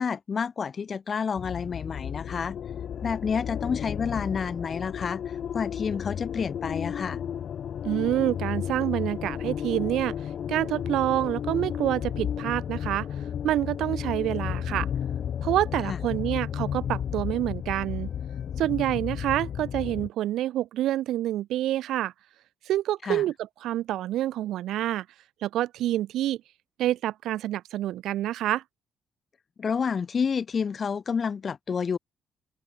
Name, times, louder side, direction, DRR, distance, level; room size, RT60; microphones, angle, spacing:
voice 1, 0.0-2.6 3.0-5.2 5.5-7.2 15.9-16.0 23.0-23.2 29.6-32.0, left 6 dB, 45° left, 1.1 m, -29 dB
sound 1, 1.4-20.1, left 9 dB, 60° left, 2.4 m, -33 dB
voice 2, 7.8-10.2 10.5-13.1 13.4-14.9 15.4-18.1 18.6-22.1 22.7-23.3 23.6-25.0 25.4-26.4 26.8-28.6, right 13 dB, 85° right, 2.8 m, -27 dB
open air
cardioid pair, 90°, 0 cm